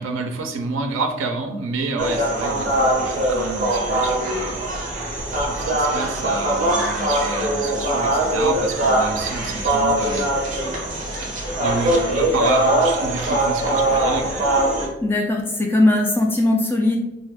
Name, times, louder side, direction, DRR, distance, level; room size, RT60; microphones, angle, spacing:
voice 1, 0.0-4.6 5.4-10.3 11.6-14.4, right 3 dB, 85° right, 4 dB, 0.4 m, -29 dB
sound 1, 2.0-14.9, right 1 dB, 40° right, 0.7 m, -21 dB
voice 2, 15.0-17.0, left 2 dB, 10° left, 0 dB, 0.3 m, -19 dB
2.5 x 2.3 x 3.4 m, 0.94 s
head